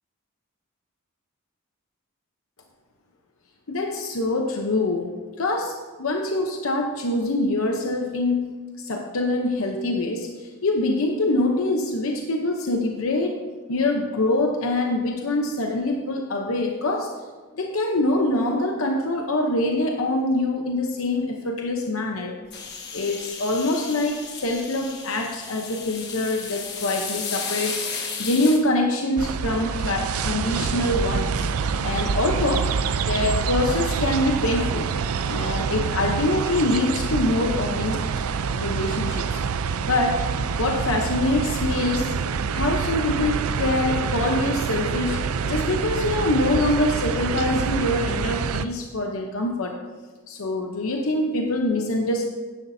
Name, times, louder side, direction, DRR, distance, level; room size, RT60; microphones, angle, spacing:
voice 1, 3.7-13.4 13.7-17.1 17.5-22.4 22.9-27.8 28.2-31.5 31.8-34.9 35.3-38.1 38.5-39.4 39.8-40.3 40.5-42.1 42.5-49.8 50.3-52.2, left 2 dB, 70° left, 2 dB, 0.8 m, -24 dB
sound 1, 22.5-28.6, left 5 dB, 50° left, 1.2 m, -34 dB
sound 2, 29.2-48.7, right 6 dB, 80° right, 0.4 m, -26 dB
11.0 x 10.5 x 2.7 m, 1.3 s
head